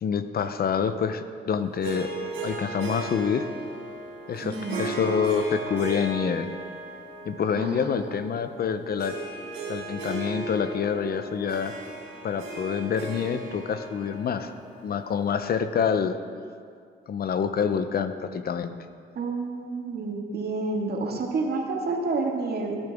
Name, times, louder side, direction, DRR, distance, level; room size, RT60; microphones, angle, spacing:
voice 1, 0.0-2.1 2.4-3.5 4.3-6.5 7.2-9.2 9.7-11.7 12.2-14.5 14.8-16.2 17.1-18.7, left 7 dB, 50° left, 10 dB, 0.7 m, -27 dB
Harp, 1.8-15.4, right 2 dB, 85° right, 3.3 m, -36 dB
voice 2, 4.4-4.8 7.5-8.0 19.2-22.8, right 3 dB, 55° right, 1 dB, 1.8 m, -29 dB
17.0 x 10.5 x 3.6 m, 2.2 s
cardioid pair, 90°, 20 cm